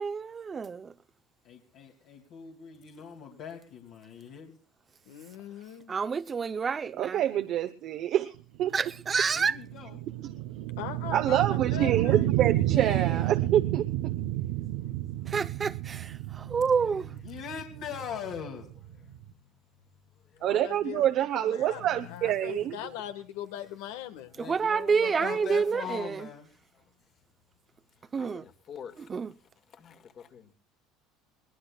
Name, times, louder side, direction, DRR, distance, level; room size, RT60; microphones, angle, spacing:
voice 1, 0.0-0.9 5.9-7.2 8.7-9.6 15.3-17.1 24.4-26.3 28.1-28.4 29.0-29.3, right 5 dB, 25° right, 0.7 m, -28 dB
voice 2, 1.5-4.6 9.3-10.1 12.4-13.4 16.4-16.6 17.0-19.4 21.9-22.9 24.3-26.5, left 8 dB, 65° left, 2.8 m, -42 dB
voice 3, 5.1-5.9 10.8-12.3 20.4-24.3, left 11 dB, 85° left, 1.6 m, -40 dB
voice 4, 7.0-8.3 8.6-8.7 11.1-13.8 20.4-22.8, right 11 dB, 55° right, 0.9 m, -26 dB
sound 1, 8.6-19.3, right 14 dB, 85° right, 0.8 m, -30 dB
voice 5, 28.2-29.1 29.7-30.5, left 7 dB, 40° left, 2.1 m, -47 dB
22.0 x 18.5 x 2.4 m
supercardioid pair, 125°, 0 cm